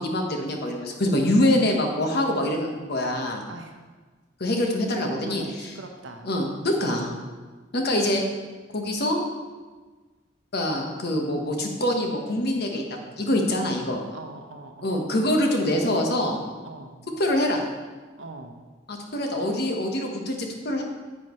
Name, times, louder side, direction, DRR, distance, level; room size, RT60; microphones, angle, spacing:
voice 1, 0.0-3.4 4.4-5.8 6.2-7.1 7.7-8.2 8.7-9.2 10.5-14.0 14.8-16.4 17.2-17.6 18.9-20.8, left 1 dB, 55° left, 2 dB, 1.3 m, -25 dB
voice 2, 5.0-6.3 14.1-15.0 16.6-17.0 18.2-18.6, right 2 dB, 75° right, 3 dB, 1.0 m, -41 dB
10.0 x 7.7 x 3.1 m, 1.3 s
head